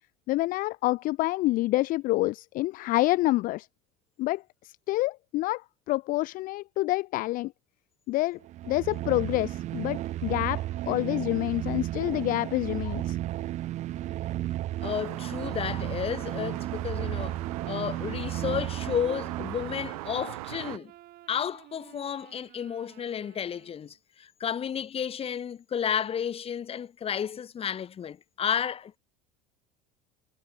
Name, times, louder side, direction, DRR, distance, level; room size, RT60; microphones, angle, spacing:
voice 1, 0.3-3.7 4.2-7.5 8.1-8.4 8.7-13.2, left 18 dB, 50° left, 0.5 m, -27 dB
sound 1, 8.4-20.1, right 14 dB, 40° right, 0.4 m, -34 dB
voice 2, 14.8-20.9 21.3-29.0, left 8 dB, 30° left, 1.1 m, -32 dB
sound 2, 14.8-20.8, right 20 dB, 75° right, 1.5 m, -41 dB
sound 3, 17.1-24.0, right 16 dB, 55° right, 3.2 m, -53 dB
hypercardioid pair, 80°, 19 cm